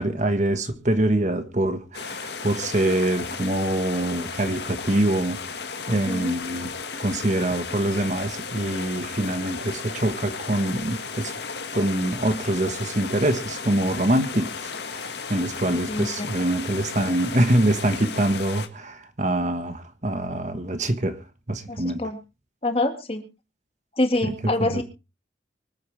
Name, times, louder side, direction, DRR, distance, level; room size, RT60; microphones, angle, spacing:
voice 1, 0.0-5.4 5.9-6.7 7.0-11.3 11.7-21.2 21.5-22.0 24.2-24.3 24.6-24.8, right 1 dB, 40° right, 1.4 m, -24 dB
sound 1, 1.9-18.7, left 5 dB, 65° left, 1.8 m, -34 dB
voice 2, 5.9-6.4 15.9-16.3 21.7-22.2 22.6-23.3 24.0-24.8, left 2 dB, 30° left, 1.9 m, -26 dB
24.5 x 9.1 x 3.3 m
head